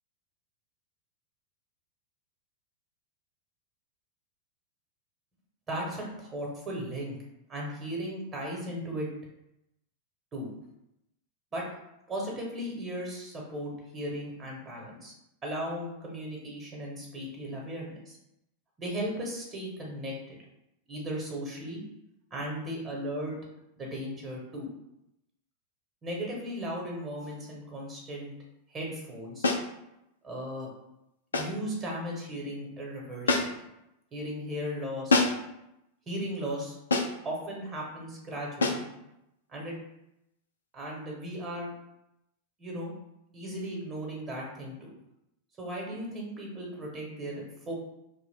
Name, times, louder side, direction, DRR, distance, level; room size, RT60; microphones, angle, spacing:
voice 1, 5.7-7.2 7.5-9.1 10.3-10.5 11.5-11.6 12.1-15.1 15.4-18.2 18.8-20.4 20.9-21.8 22.3-23.4 23.8-24.7 26.0-28.3 28.7-29.5 30.2-30.7 31.3-33.6 34.1-35.2 36.1-36.8 37.2-38.9 39.5-39.8 40.7-41.7 42.6-42.9 43.3-44.9 45.6-47.7, equal, 25° right, -2 dB, 0.9 m, -36 dB
sound 1, 29.4-29.7 31.3-31.6 33.3-33.7 35.1-35.5 36.9-37.3 38.6-38.9, left 3 dB, 70° left, 0.3 m, -26 dB
2.4 x 2.1 x 3.4 m, 0.84 s
figure-of-eight pair, 90°, 0 cm